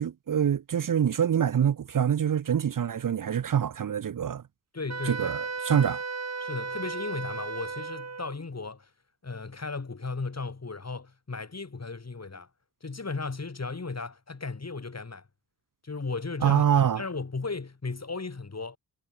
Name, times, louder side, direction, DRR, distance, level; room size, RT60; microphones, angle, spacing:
voice 1, 0.0-4.4 5.1-5.4 5.6-6.0 16.4-17.0, right 8 dB, 60° right, 0.6 m, -25 dB
voice 2, 4.7-5.3 5.6-5.9 6.4-8.9 9.2-12.5 12.8-15.3 15.8-16.6 16.9-18.8, left 4 dB, 45° left, 6.6 m, -35 dB
Wind instrument woodwind instrument, 4.9-8.4, right 4 dB, 45° right, 3.0 m, -35 dB
wide cardioid pair, 110°, 37 cm